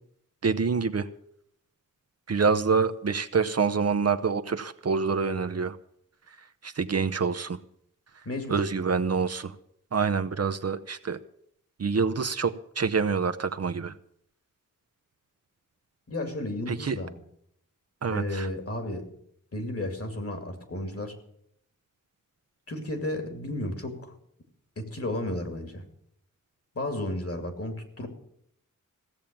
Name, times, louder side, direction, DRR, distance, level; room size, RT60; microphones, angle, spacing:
voice 1, 0.4-1.1 2.3-5.8 6.6-7.6 8.5-9.5 9.9-11.2 11.8-14.0 16.7-17.0 18.0-18.5, right 5 dB, 50° right, 10 dB, 0.8 m, -26 dB
voice 2, 8.2-8.6 16.1-17.2 18.1-19.1 19.5-21.1 22.7-24.1 24.8-25.8 26.7-28.1, left 1 dB, 45° left, 7 dB, 2.6 m, -33 dB
16.0 x 7.4 x 8.8 m, 0.71 s
wide cardioid pair, 75°, 32 cm